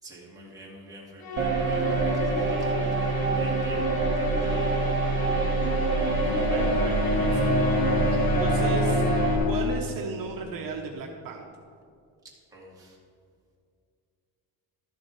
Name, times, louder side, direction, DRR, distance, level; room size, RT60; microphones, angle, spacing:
voice 1, 0.0-3.9 4.2-4.9 12.5-13.0, right 1 dB, 10° right, -5 dB, 2.3 m, -47 dB
Musical instrument, 1.2-9.7, left 5 dB, 55° left, 1.4 m, -36 dB
sound 1, 1.4-9.4, right 3 dB, 30° right, 1.0 m, -25 dB
Bowed string instrument, 6.2-10.5, left 8 dB, 90° left, 0.9 m, -30 dB
voice 2, 6.5-7.5 8.1-9.0 9.5-11.4, right 4 dB, 60° right, 1 dB, 1.0 m, -36 dB
13.0 x 7.2 x 4.7 m, 2.3 s
cardioid pair, 165°, 39 cm